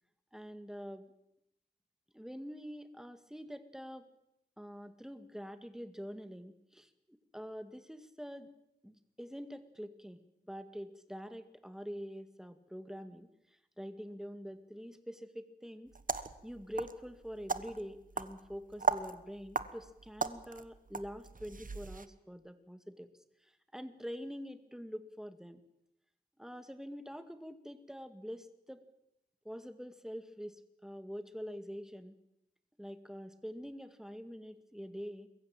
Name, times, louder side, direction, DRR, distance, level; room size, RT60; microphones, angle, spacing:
voice 1, 0.3-1.1 2.1-4.1 4.6-8.5 8.8-16.0 16.4-23.1 23.4-25.6 26.4-28.9 29.4-32.2 32.8-35.3, equal, 5° right, 10 dB, 2.1 m, -45 dB
sound 1, 15.9-22.1, right 4 dB, 55° right, 1.2 m, -38 dB
22.0 x 14.5 x 9.0 m, 0.85 s
wide cardioid pair, 55°, 17 cm